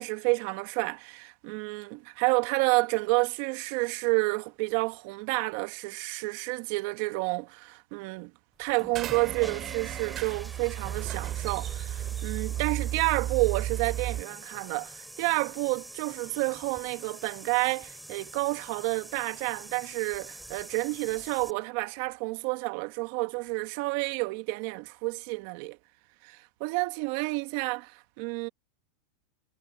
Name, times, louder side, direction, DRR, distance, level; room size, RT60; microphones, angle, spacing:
voice 1, 0.0-8.3 8.6-25.8 26.2-28.5, right 27 dB, 60° right, 1.6 m, -30 dB
sound 1, 8.6-21.5, right 1 dB, 5° right, 6.7 m, -46 dB
sound 2, 8.9-14.2, right 12 dB, 40° right, 2.4 m, -34 dB
hypercardioid pair, 115°, 0 cm